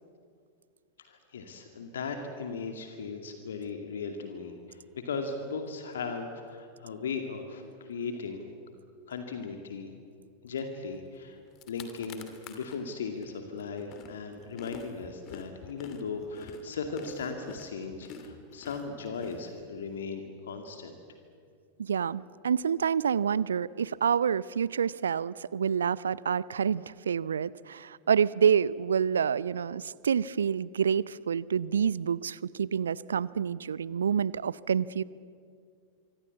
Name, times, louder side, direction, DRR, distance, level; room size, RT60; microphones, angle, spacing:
voice 1, 1.0-8.5 9.1-9.9 10.4-11.4 11.7-21.0, left 4 dB, 65° left, 5 dB, 2.3 m, -37 dB
sound 1, 11.2-11.3 11.5-12.8 13.2-20.0, left 6 dB, 35° left, 2.7 m, -47 dB
voice 2, 21.8-35.0, right 7 dB, 70° right, 21 dB, 0.6 m, -28 dB
25.5 x 24.5 x 8.4 m, 2.3 s
figure-of-eight pair, 90°, 0 cm